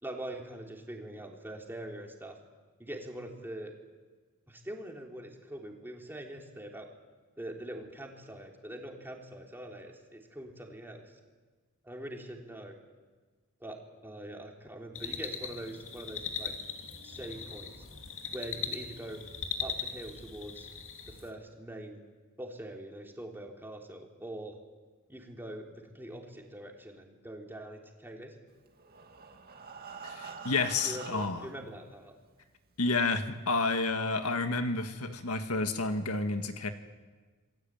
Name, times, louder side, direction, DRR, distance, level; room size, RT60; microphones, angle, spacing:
voice 1, 0.0-2.4 2.8-3.7 4.5-6.9 7.4-11.0 11.8-12.7 13.6-16.6 17.0-17.8 18.3-19.2 19.6-20.7 21.0-22.0 22.4-24.6 25.1-28.4 30.8-32.1, right 1 dB, 10° right, 1 dB, 3.6 m, -43 dB
sound 1, 15.0-21.3, left 6 dB, 65° left, 2.7 m, -39 dB
Breathing, 28.7-31.6 32.4-32.5 32.8-32.9 33.4-33.5, right 5 dB, 45° right, 2.4 m, -46 dB
voice 2, 30.0-31.5 32.8-36.7, left 3 dB, 80° left, 7 dB, 1.9 m, -30 dB
27.5 x 21.5 x 9.0 m, 1.4 s
head